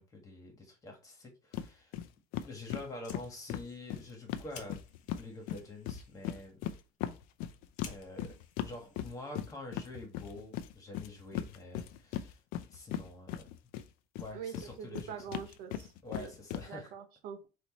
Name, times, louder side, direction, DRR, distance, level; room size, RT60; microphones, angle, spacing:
voice 1, 0.0-2.0 2.4-4.8 5.2-6.6 7.8-8.3 8.6-12.4 12.7-13.5 14.2-15.4 16.0-16.9, left 2 dB, 25° left, 2 dB, 1.5 m, -47 dB
sound 1, 1.5-1.7 1.9-2.1 2.3-5.2 5.5-13.9 14.1-16.6, left 11 dB, 85° left, 0.5 m, -38 dB
Fire, 2.9-9.7, left 6 dB, 55° left, 1.0 m, -56 dB
voice 2, 14.3-16.3 16.6-17.5, right 8 dB, 85° right, 6 dB, 1.0 m, -44 dB
4.4 x 2.7 x 4.1 m, 0.32 s
cardioid pair, 140°, 15 cm